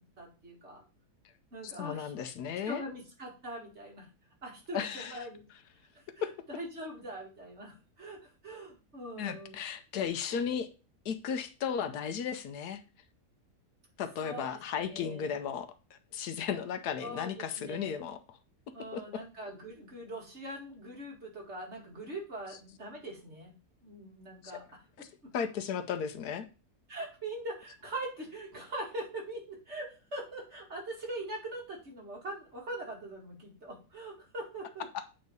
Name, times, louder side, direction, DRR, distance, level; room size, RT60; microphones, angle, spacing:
voice 1, 0.2-0.8 1.5-2.1 2.7-4.1 4.4-5.4 5.9-9.6 14.2-15.4 17.0-18.0 18.7-23.5 23.8-24.8 25.2-25.3 26.9-34.9, right 1 dB, 45° right, 2.3 m, -42 dB
voice 2, 1.6-2.8 4.7-5.2 6.2-6.3 9.2-10.7 11.0-12.8 14.0-18.4 18.9-19.2 25.0-25.1 25.3-26.5 34.9-35.0, left 7 dB, 75° left, 1.2 m, -35 dB
8.7 x 3.2 x 5.3 m
omnidirectional pair, 1.7 m